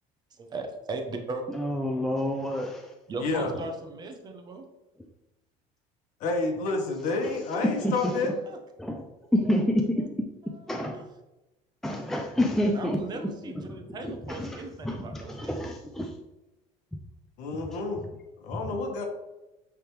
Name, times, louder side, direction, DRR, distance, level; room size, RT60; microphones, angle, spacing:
voice 1, 0.4-1.4 3.1-4.6 7.5-8.2 8.5-8.6 9.4-9.6 10.0-10.1 10.4-10.8 12.6-15.6, right 3 dB, 30° right, 4 dB, 0.9 m, -38 dB
voice 2, 1.6-2.9 7.6-8.2 8.8-9.1 9.3-11.0 11.8-13.2 13.7-16.1, left 1 dB, 5° left, 2 dB, 0.4 m, -29 dB
voice 3, 6.2-8.3 17.4-18.1 18.4-19.1, left 3 dB, 60° left, 2 dB, 1.4 m, -29 dB
8.9 x 3.6 x 3.2 m, 0.99 s
cardioid pair, 150°, 14 cm